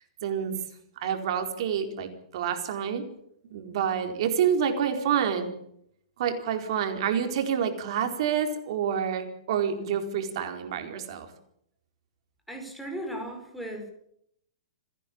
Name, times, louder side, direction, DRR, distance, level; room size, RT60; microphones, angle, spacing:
voice 1, 0.2-0.6 1.0-3.0 3.5-5.5 6.2-11.3, right 8 dB, 55° right, 6 dB, 4.4 m, -28 dB
voice 2, 12.5-13.9, right 1 dB, ahead, 2 dB, 5.2 m, -36 dB
28.0 x 10.5 x 8.7 m, 0.72 s
hypercardioid pair, 150°, 3 cm